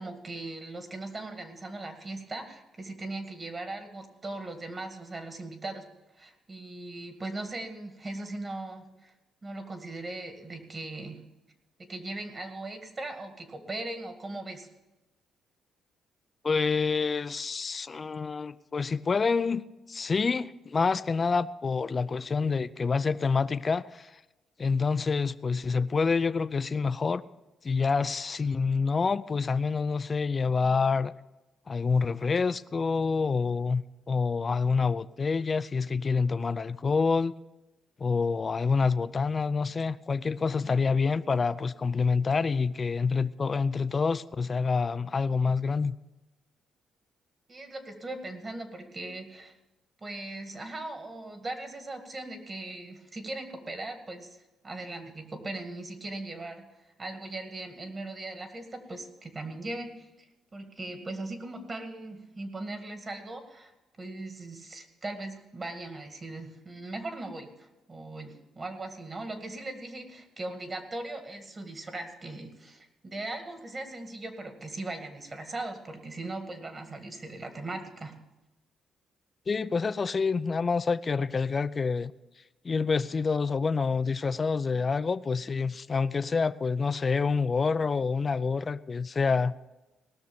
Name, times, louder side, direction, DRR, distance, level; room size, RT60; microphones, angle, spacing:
voice 1, 0.0-5.9 6.1-9.1 9.4-11.2 11.8-14.7 47.5-49.5 50.0-60.3 60.5-63.7 64.0-78.2, right 2 dB, 30° right, 6 dB, 2.0 m, -39 dB
voice 2, 16.4-19.6 19.9-24.1 24.6-27.2 27.6-31.1 31.7-37.3 38.0-46.0 79.5-82.1 82.6-89.5, left 4 dB, 35° left, 15 dB, 0.4 m, -27 dB
18.0 x 6.5 x 7.0 m, 1.0 s
cardioid pair, 90°, 0 cm